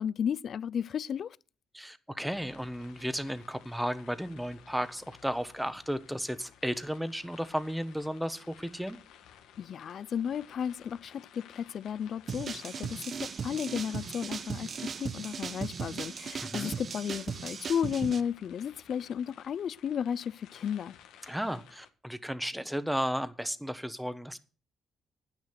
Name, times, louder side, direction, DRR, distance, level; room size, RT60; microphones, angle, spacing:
voice 1, 0.0-1.4 9.6-20.9, left 8 dB, 60° left, 0.5 m, -34 dB
voice 2, 1.7-9.0 16.4-16.7 21.3-24.4, equal, ahead, 1.2 m, -34 dB
sound 1, 2.2-21.9, left 10 dB, 90° left, 1.6 m, -56 dB
sound 2, 12.3-18.2, right 6 dB, 45° right, 0.8 m, -37 dB
10.0 x 9.7 x 5.9 m
cardioid pair, 90°, 0 cm